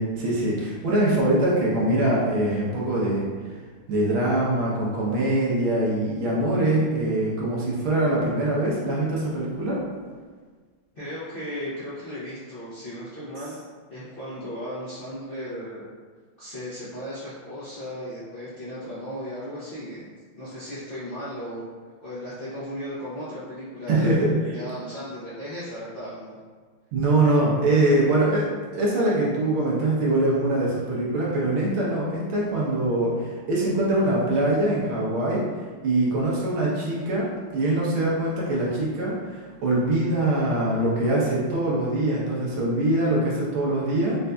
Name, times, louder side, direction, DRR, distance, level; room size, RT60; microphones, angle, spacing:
voice 1, 0.0-3.2 3.9-9.8 23.9-24.3 26.9-35.5 35.8-44.2, right 1 dB, 75° right, -5 dB, 1.7 m, -23 dB
voice 2, 10.9-13.5 13.9-15.9 16.4-20.1 20.3-21.6 22.0-24.2 24.5-26.4, equal, 70° left, -12 dB, 0.5 m, -36 dB
4.4 x 2.6 x 2.2 m, 1.5 s
omnidirectional pair, 2.3 m